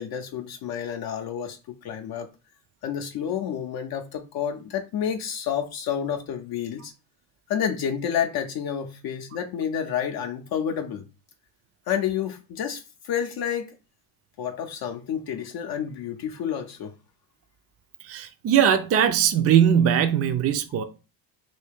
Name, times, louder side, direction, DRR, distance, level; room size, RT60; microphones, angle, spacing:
voice 1, 0.0-2.3 2.8-6.9 7.5-11.1 11.9-13.7 14.4-16.9, left 8 dB, 55° left, 0.6 m, -29 dB
voice 2, 18.0-20.8, right 9 dB, 35° right, 0.4 m, -20 dB
2.8 x 2.7 x 3.5 m
supercardioid pair, 85°, 43 cm